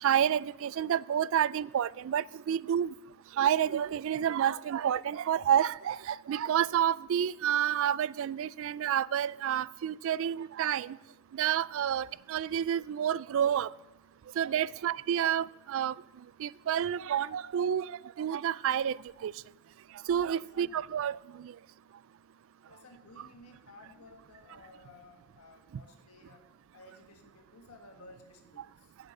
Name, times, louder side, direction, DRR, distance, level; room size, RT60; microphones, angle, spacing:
voice 1, 0.0-2.9 3.4-11.0 11.3-13.7 14.4-16.0 16.4-19.3 20.1-21.5, right 9 dB, 60° right, 0.3 m, -29 dB
voice 2, 20.4-20.7 22.7-29.0, left 2 dB, 85° left, 1.7 m, -55 dB
10.5 x 7.8 x 6.6 m
head